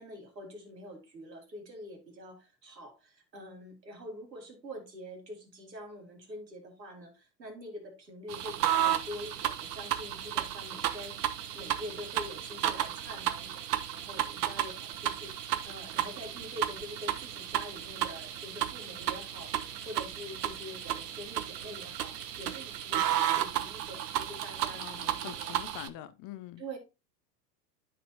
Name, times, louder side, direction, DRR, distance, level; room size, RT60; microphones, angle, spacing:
voice 1, 0.0-13.6 13.9-19.6 19.9-25.6 26.6-26.8, equal, 90° right, 2.5 m, -45 dB
sound 1, 8.3-25.9, right 11 dB, 70° right, 1.0 m, -33 dB
voice 2, 24.8-26.8, left 13 dB, 40° left, 0.8 m, -45 dB
12.0 x 4.2 x 2.8 m
hypercardioid pair, 85°, 49 cm